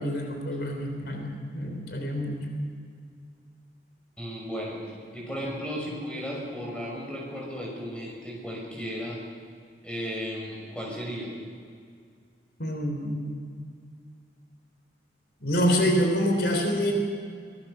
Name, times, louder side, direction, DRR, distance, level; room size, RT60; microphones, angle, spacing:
voice 1, 0.0-2.4 12.6-13.2 15.4-16.9, equal, 70° left, 3 dB, 3.4 m, -26 dB
voice 2, 4.2-9.2 9.8-11.3, equal, 5° left, -3 dB, 6.1 m, -35 dB
24.0 x 18.5 x 6.7 m, 2.2 s
head